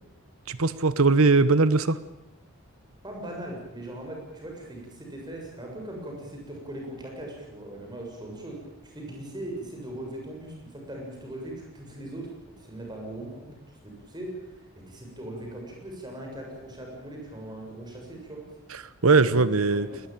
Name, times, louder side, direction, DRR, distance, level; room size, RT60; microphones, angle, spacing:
voice 1, 0.5-2.0 19.0-19.9, right 3 dB, 75° right, 15 dB, 1.0 m, -20 dB
voice 2, 3.0-14.5 14.9-18.4 19.7-20.0, right 1 dB, 20° right, 0 dB, 7.1 m, -40 dB
20.5 x 20.5 x 9.1 m, 0.90 s
head